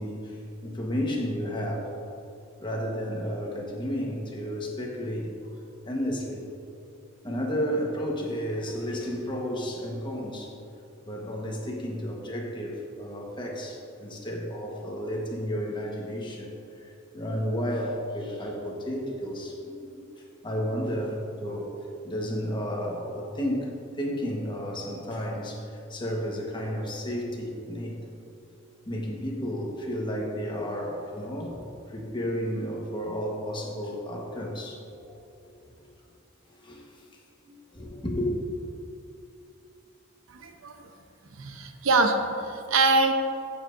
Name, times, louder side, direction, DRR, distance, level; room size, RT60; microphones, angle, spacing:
voice 1, 0.0-1.9 2.6-5.6 5.8-6.5 7.2-10.5 11.0-28.0 28.8-31.6 31.8-35.1 36.5-37.1 37.4-38.3, equal, 25° left, -1 dB, 1.3 m, -32 dB
voice 2, 40.3-40.8 41.3-43.1, right 3 dB, 80° right, 6 dB, 0.8 m, -24 dB
15.0 x 7.1 x 2.6 m, 2.7 s
head